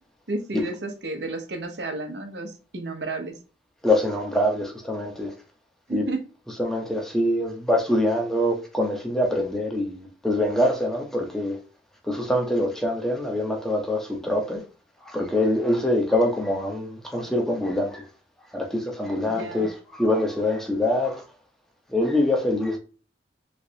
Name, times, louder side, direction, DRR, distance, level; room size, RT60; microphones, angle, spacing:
voice 1, 0.3-3.3 5.9-6.2 19.2-19.7, right 2 dB, 75° right, 0.8 m, -32 dB
voice 2, 3.8-5.3 5.9-6.0 6.6-11.6 12.0-14.6 15.0-18.1 18.5-21.2 21.9-22.8, left 1 dB, 5° left, 0.8 m, -24 dB
3.3 x 3.1 x 2.8 m
head